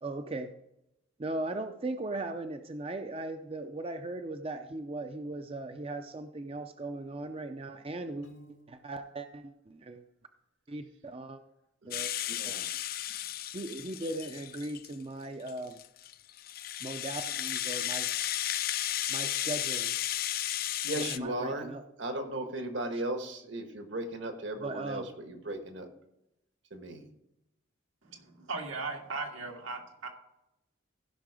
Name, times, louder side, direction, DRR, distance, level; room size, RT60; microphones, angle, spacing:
voice 1, 0.0-0.5 1.2-8.3 8.7-10.1 10.7-11.4 11.8-12.1 12.4-12.6 13.5-15.8 16.8-18.1 19.1-20.0 20.9-21.8 24.6-25.1, right 2 dB, 30° right, 7 dB, 0.5 m, -38 dB
Piano, 8.2-9.2, right 1 dB, 85° left, 1.9 m, -55 dB
voice 2, 11.8-12.7 20.8-21.7 22.0-25.9 26.7-27.1, right 1 dB, 65° right, 6 dB, 1.5 m, -36 dB
Rattle (instrument), 11.9-14.9 15.5-21.2, left 12 dB, 50° left, 0.4 m, -34 dB
voice 3, 28.0-30.1, right 3 dB, 90° right, 1 dB, 2.0 m, -38 dB
15.5 x 5.8 x 4.8 m, 0.87 s
head